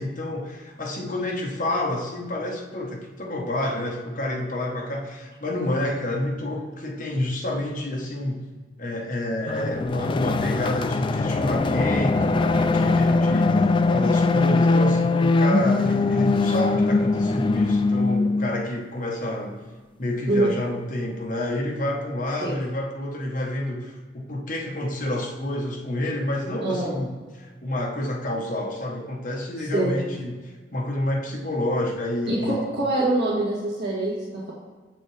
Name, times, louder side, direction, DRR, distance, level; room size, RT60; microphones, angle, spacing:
voice 1, 0.0-8.4 8.8-19.6 20.0-27.1 27.4-32.7, left 1 dB, 50° left, 0 dB, 1.2 m, -29 dB
sound 1, 9.5-18.7, left 3 dB, 30° left, 0.3 m, -21 dB
voice 2, 26.6-26.9 29.7-30.0 32.3-34.5, right 2 dB, 65° right, -6 dB, 1.7 m, -24 dB
7.4 x 7.3 x 3.4 m, 1.4 s
head